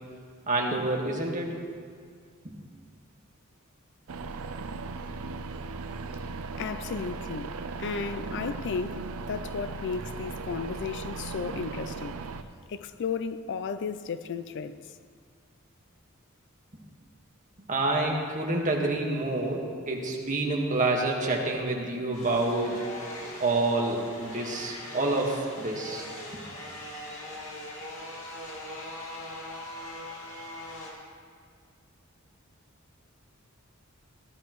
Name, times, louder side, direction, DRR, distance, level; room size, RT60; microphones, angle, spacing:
voice 1, 0.5-1.5 2.4-2.5 17.7-22.8 23.4-26.0 26.3-26.4, right 2 dB, 35° right, 1.5 m, -28 dB
sound 1, 4.1-12.4, right 4 dB, 90° right, 0.5 m, -37 dB
voice 2, 6.6-12.2 12.7-14.8, left 5 dB, 55° left, 0.4 m, -34 dB
sound 2, 22.1-30.9, left 1 dB, 90° left, 2.1 m, -41 dB
15.0 x 12.0 x 3.1 m
head